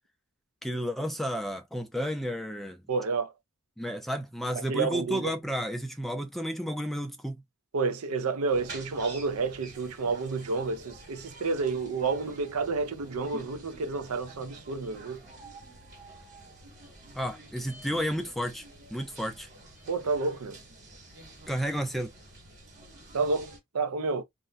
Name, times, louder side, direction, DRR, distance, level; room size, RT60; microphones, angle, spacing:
voice 1, 0.6-2.8 3.8-7.4 13.3-13.4 17.2-18.6 18.9-19.5 21.5-22.1, equal, ahead, 0.3 m, -32 dB
voice 2, 2.9-3.3 4.7-5.3 7.7-15.2 19.9-20.6 23.1-24.2, right 4 dB, 80° right, 0.5 m, -30 dB
sound 1, 8.5-23.6, right 2 dB, 35° right, 1.4 m, -49 dB
2.5 x 2.1 x 3.8 m
head